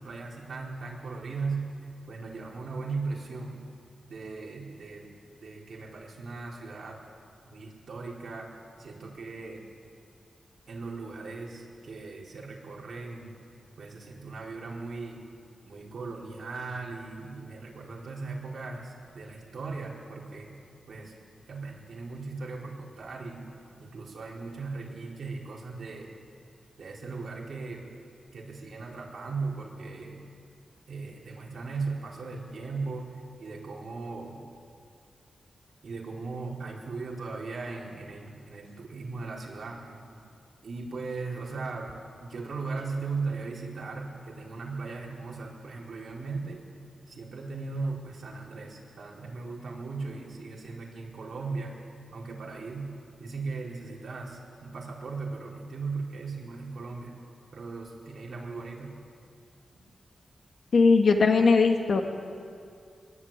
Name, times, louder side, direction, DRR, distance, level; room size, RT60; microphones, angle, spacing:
voice 1, 0.0-1.7 2.1-3.6 4.1-5.1 5.4-7.0 7.5-8.5 8.8-9.6 10.7-13.3 13.8-15.2 15.6-20.6 20.9-21.1 21.5-23.5 23.8-26.1 26.8-27.8 28.3-30.2 30.9-33.1 33.4-34.4 35.8-40.2 40.6-41.9 42.2-46.7 47.1-51.8 52.1-52.9 53.2-57.2 57.5-58.9, right 4 dB, 55° right, -2 dB, 4.7 m, -37 dB
voice 2, 60.7-62.0, left 4 dB, 55° left, 4 dB, 2.0 m, -20 dB
24.0 x 22.0 x 9.1 m, 2.3 s
wide cardioid pair, 170°, 0 cm